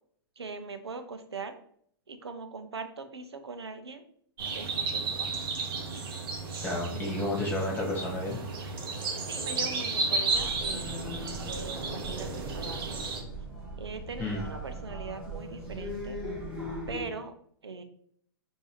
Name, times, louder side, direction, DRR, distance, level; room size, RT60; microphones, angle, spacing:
voice 1, 0.4-1.6 2.1-4.0 4.5-5.3 9.2-11.2 11.6-13.0 13.8-16.2 16.9-17.3 17.6-17.8, right 4 dB, 85° right, 9 dB, 0.6 m, -41 dB
sound 1, 4.4-13.2, right 3 dB, 60° right, 1.0 m, -33 dB
voice 2, 6.6-8.4 14.2-14.4, left 2 dB, 15° left, -3 dB, 1.5 m, -31 dB
sound 2, 10.3-17.1, right 1 dB, 5° right, 1.5 m, -39 dB
5.3 x 2.7 x 3.0 m, 0.63 s
hypercardioid pair, 115°, 13 cm